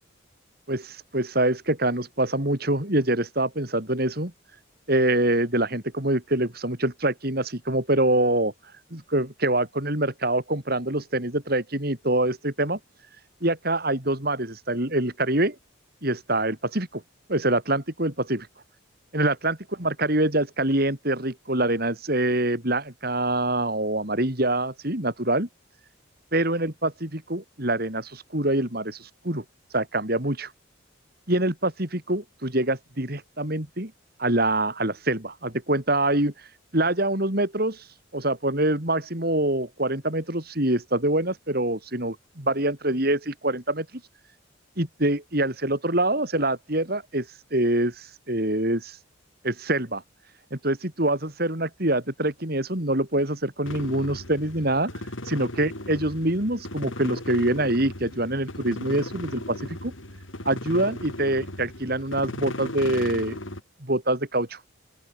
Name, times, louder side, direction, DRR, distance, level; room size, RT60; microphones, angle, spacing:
voice 1, 0.7-4.3 4.9-8.5 8.9-12.8 13.4-15.6 16.0-17.0 17.3-18.5 19.1-25.5 26.3-29.4 29.7-30.5 31.3-33.9 34.2-36.3 36.7-37.8 38.1-43.9 44.8-49.0 49.4-50.0 50.5-54.9 55.3-59.9 60.5-63.4 63.8-64.6, right 1 dB, 50° right, 4.0 m, -25 dB
sound 1, 53.6-63.6, left 1 dB, 75° left, 6.0 m, -36 dB
open air
head